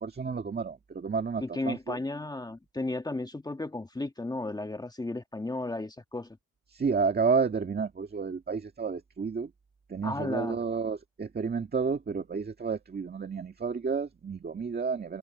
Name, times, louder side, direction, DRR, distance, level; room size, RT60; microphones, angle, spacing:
voice 1, 0.0-2.0 6.7-9.5 9.9-15.2, right 5 dB, 30° right, 1.9 m, -31 dB
voice 2, 1.4-6.4 10.0-10.6, left 2 dB, 15° left, 1.5 m, -34 dB
cardioid pair, 90°, 30 cm